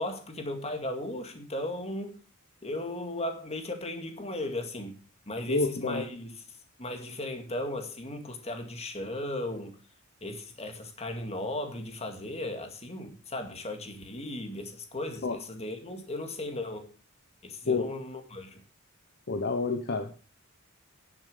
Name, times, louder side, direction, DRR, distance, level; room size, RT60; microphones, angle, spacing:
voice 1, 0.0-2.2 2.6-5.0 5.3-6.3 6.8-9.8 10.2-16.9 17.4-18.6, left 1 dB, 30° left, 2.1 m, -36 dB
voice 2, 5.5-6.0 15.2-15.4 17.7-17.9 19.3-20.2, left 3 dB, 50° left, 1.0 m, -28 dB
10.5 x 7.2 x 6.6 m
head